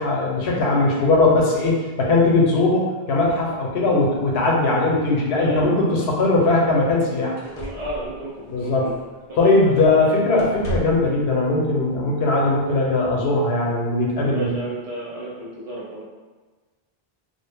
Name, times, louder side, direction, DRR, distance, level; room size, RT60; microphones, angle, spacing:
voice 1, 0.0-7.4 8.5-8.9 9.4-14.5, left 2 dB, 90° left, -2 dB, 0.8 m, -19 dB
voice 2, 5.3-6.1 6.4-6.6 7.5-8.9 9.4-9.7 10.0-10.1 14.3-16.0, right 1 dB, 50° right, -7 dB, 0.5 m, -33 dB
sound 1, 6.8-7.0 7.4-9.3 9.7-10.0 10.3-11.1 12.2-12.3, equal, 60° left, 0.7 m, -34 dB
2.1 x 2.0 x 3.3 m, 1.3 s
omnidirectional pair, 1.0 m